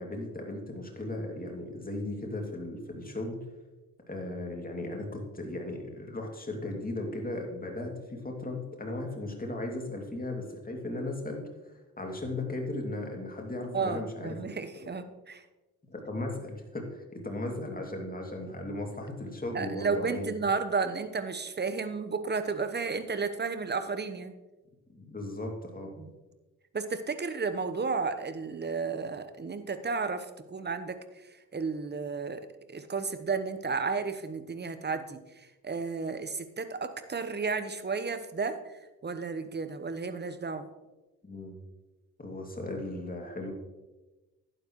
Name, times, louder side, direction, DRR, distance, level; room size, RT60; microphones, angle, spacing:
voice 1, 0.0-3.4 4.1-14.4 15.9-20.3 24.9-25.9 41.2-41.6 42.2-43.5, left 2 dB, 20° left, 1 dB, 2.5 m, -36 dB
voice 2, 13.7-15.4 19.5-24.3 26.0-26.1 26.7-31.0 31.5-32.4 32.7-38.6 39.0-40.7, right 4 dB, 25° right, 10 dB, 1.0 m, -33 dB
11.5 x 9.2 x 3.1 m, 1.1 s
hypercardioid pair, 45°, 45 cm